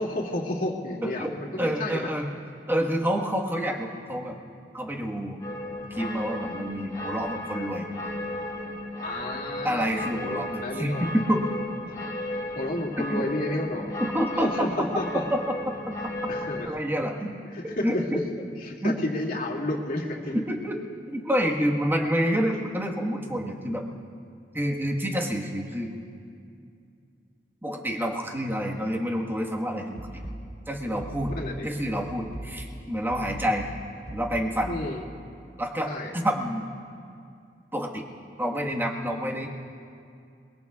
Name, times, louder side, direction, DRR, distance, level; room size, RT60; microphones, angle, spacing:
voice 1, 0.0-2.1 9.0-9.9 10.2-11.0 12.6-13.9 14.3-15.2 16.3-16.7 17.5-18.0 18.6-20.4 31.3-31.7 34.7-35.0 35.9-36.1, left 1 dB, 55° left, -2 dB, 2.4 m, -31 dB
voice 2, 1.0-2.3 2.7-4.4 4.7-5.4 5.9-7.8 9.6-11.4 13.0-13.3 14.0-14.7 14.9-15.7 16.2-16.3 16.6-17.3 17.6-18.2 18.8-19.0 20.3-20.8 21.1-23.8 24.5-25.9 27.6-30.1 30.7-31.3 31.6-33.7 34.1-34.8 35.6-36.6 37.7-38.0 38.4-39.5, equal, 10° right, -1 dB, 1.4 m, -28 dB
sound 1, 5.4-16.7, left 1 dB, 20° left, 1.3 m, -35 dB
sound 2, 30.0-34.9, equal, 55° right, 2.8 m, -40 dB
29.0 x 21.0 x 2.4 m, 2.4 s
head